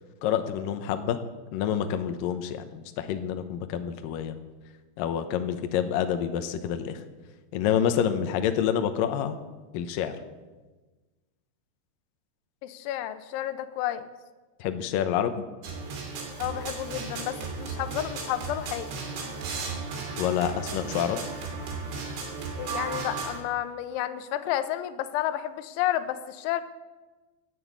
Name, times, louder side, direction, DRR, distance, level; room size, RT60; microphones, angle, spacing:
voice 1, 0.2-1.2 1.5-4.4 5.0-7.0 7.5-9.4 9.7-10.2 14.6-15.4 20.2-21.2, left 9 dB, 75° left, 8 dB, 2.1 m, -27 dB
voice 2, 12.6-14.0 16.4-18.9 22.6-26.6, left 12 dB, 90° left, 11 dB, 3.2 m, -31 dB
sound 1, 15.6-23.4, right 4 dB, 80° right, 5.0 m, -35 dB
16.5 x 9.4 x 8.2 m, 1.3 s
omnidirectional pair, 5.2 m